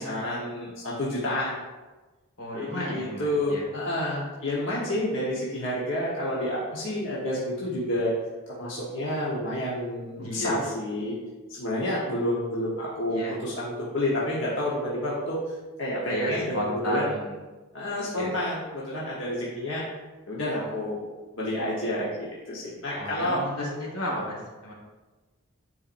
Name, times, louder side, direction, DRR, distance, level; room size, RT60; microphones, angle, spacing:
voice 1, 0.0-1.6 2.5-8.1 8.6-11.1 11.5-17.2 17.7-19.8 20.3-21.0 21.3-23.4, left 1 dB, 60° left, -6 dB, 1.2 m, -29 dB
voice 2, 2.4-3.6 10.2-10.7 13.1-13.3 16.1-17.3 18.1-18.3 23.0-24.7, equal, 80° left, -2 dB, 1.9 m, -33 dB
10.0 x 4.2 x 2.6 m, 1.2 s
head